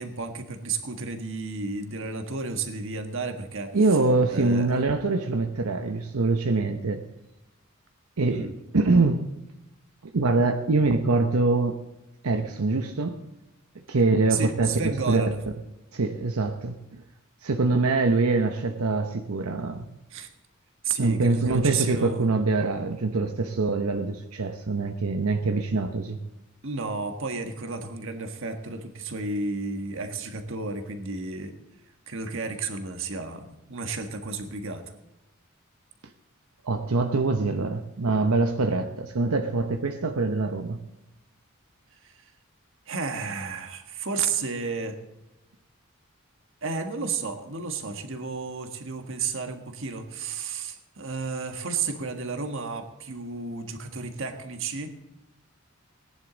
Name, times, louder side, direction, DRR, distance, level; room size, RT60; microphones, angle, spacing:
voice 1, 0.0-3.8 4.3-4.7 8.2-8.6 14.3-15.4 20.1-20.3 20.8-22.3 26.6-31.5 32.1-34.8 42.0-42.3 42.9-45.0 46.6-54.9, right 4 dB, 60° right, 6 dB, 1.5 m, -32 dB
voice 2, 3.7-7.0 8.2-8.5 8.7-9.3 10.1-11.8 12.2-13.2 13.9-15.2 15.9-17.0 17.4-19.9 21.0-26.2 36.6-40.8, right 3 dB, 90° right, 5 dB, 0.9 m, -24 dB
18.5 x 10.5 x 4.0 m, 0.96 s
head